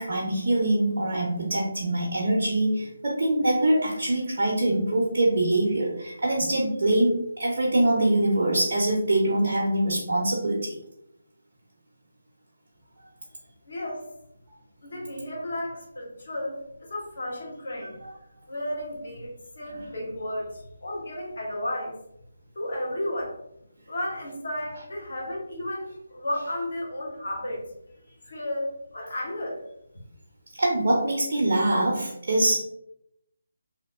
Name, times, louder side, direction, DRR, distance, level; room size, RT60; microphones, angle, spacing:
voice 1, 0.0-10.8 17.8-18.1 30.6-32.6, right 1 dB, 55° right, -4 dB, 0.6 m, -24 dB
voice 2, 13.7-14.1 14.8-18.0 18.5-22.0 22.5-23.4 23.9-27.7 28.3-29.6, left 1 dB, 60° left, -2 dB, 0.9 m, -33 dB
2.7 x 2.2 x 2.3 m, 0.79 s
figure-of-eight pair, 150°, 0 cm